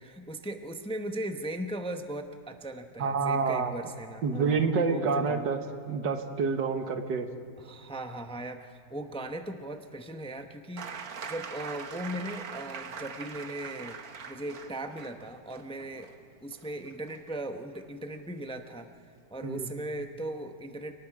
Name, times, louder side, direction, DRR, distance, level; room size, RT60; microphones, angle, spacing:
voice 1, 0.0-5.4 7.6-14.0 14.3-16.1 16.4-20.9, right 1 dB, 5° left, 6 dB, 0.5 m, -38 dB
voice 2, 3.0-3.7 4.2-5.6 5.9-7.3 19.4-19.7, right 5 dB, 85° right, 6 dB, 2.0 m, -28 dB
sound 1, 10.8-18.3 19.5-19.6, right 6 dB, 60° right, 1.5 m, -43 dB
29.5 x 19.0 x 5.0 m, 2.6 s
omnidirectional pair, 1.9 m